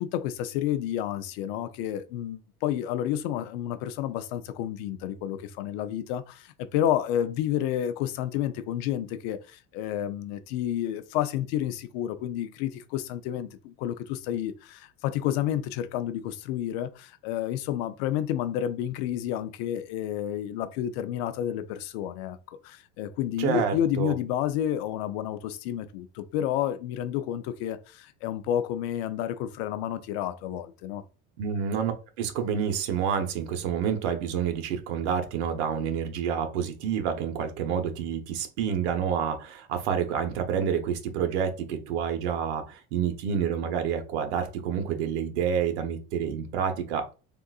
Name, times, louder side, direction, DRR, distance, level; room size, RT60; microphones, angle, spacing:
voice 1, 0.0-31.0, left 11 dB, 70° left, 0.5 m, -30 dB
voice 2, 23.4-24.1 31.4-31.9 32.2-47.2, right 7 dB, 85° right, 0.8 m, -28 dB
3.6 x 2.4 x 2.3 m
supercardioid pair, 140°, 33 cm